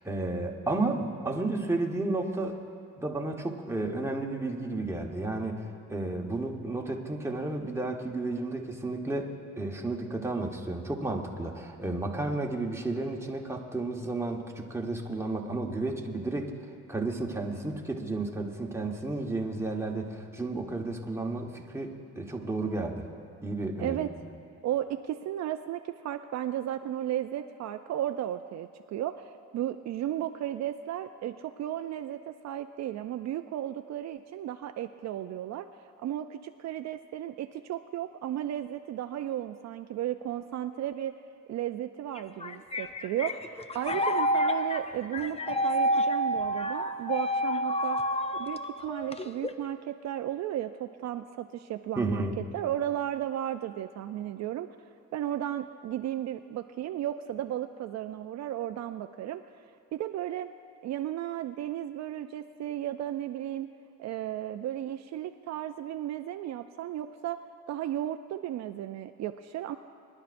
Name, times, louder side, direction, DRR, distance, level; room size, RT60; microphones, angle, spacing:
voice 1, 0.0-2.6 3.0-16.5 16.9-23.1 23.4-24.1 52.0-52.3, right 2 dB, 10° right, 0 dB, 1.2 m, -32 dB
voice 2, 23.8-24.1 24.6-41.2 41.5-48.0 48.3-52.3 52.5-54.7 55.1-59.4 59.9-60.5 60.8-63.7 64.0-67.4 67.7-69.8, right 12 dB, 60° right, 8 dB, 0.4 m, -34 dB
sound 1, 42.2-49.7, equal, 20° left, 0.6 m, -29 dB
25.0 x 11.0 x 2.6 m, 2.3 s
cardioid pair, 90°, 30 cm